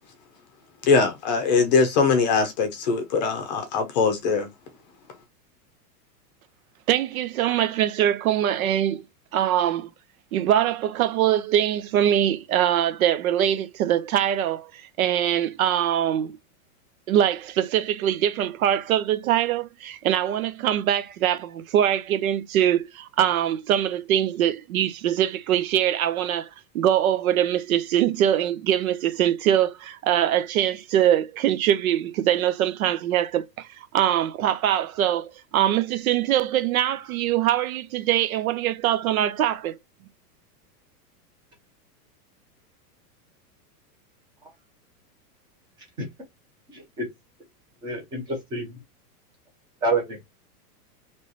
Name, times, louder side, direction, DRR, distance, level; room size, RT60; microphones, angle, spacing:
voice 1, 0.8-4.5, left 4 dB, 25° left, 0.6 m, -21 dB
voice 2, 6.9-9.0 9.3-9.9 10.3-16.4 17.1-26.5 26.7-39.8, right 11 dB, 60° right, 0.5 m, -23 dB
voice 3, 46.7-47.1 47.8-48.8 49.8-50.3, right 2 dB, 10° right, 0.6 m, -28 dB
3.2 x 3.0 x 4.0 m
supercardioid pair, 175°, 48 cm